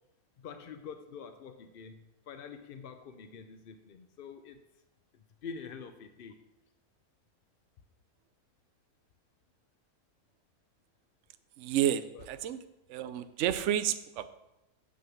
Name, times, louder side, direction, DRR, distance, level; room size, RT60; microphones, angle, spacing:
voice 1, 0.4-4.6 5.1-6.4 12.1-12.3, left 6 dB, 70° left, 8 dB, 0.5 m, -46 dB
voice 2, 11.6-12.6 12.9-14.3, right 11 dB, 65° right, 10 dB, 0.8 m, -30 dB
7.6 x 6.3 x 7.0 m, 0.94 s
omnidirectional pair, 1.6 m